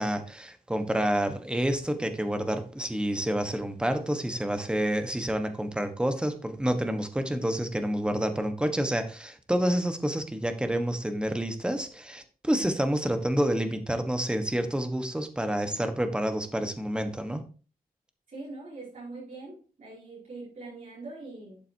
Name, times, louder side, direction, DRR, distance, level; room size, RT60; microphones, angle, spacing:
voice 1, 0.0-17.4, right 1 dB, 5° right, 7 dB, 1.3 m, -28 dB
voice 2, 18.3-21.6, right 3 dB, 50° right, -6 dB, 4.9 m, -42 dB
12.0 x 7.5 x 2.8 m, 0.36 s
wide cardioid pair, 130°, 16 cm